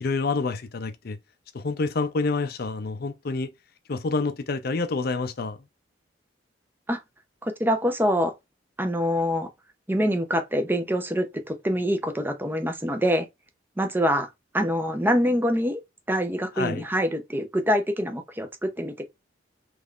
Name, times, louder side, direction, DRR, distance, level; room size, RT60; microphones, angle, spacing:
voice 1, 0.0-1.2 1.5-3.5 3.9-5.6 16.6-16.8, left 3 dB, 55° left, 0.5 m, -28 dB
voice 2, 7.4-8.3 8.8-9.5 9.9-13.3 13.8-14.3 14.5-15.8 16.1-19.0, equal, 10° right, 0.6 m, -25 dB
3.5 x 3.2 x 2.4 m
head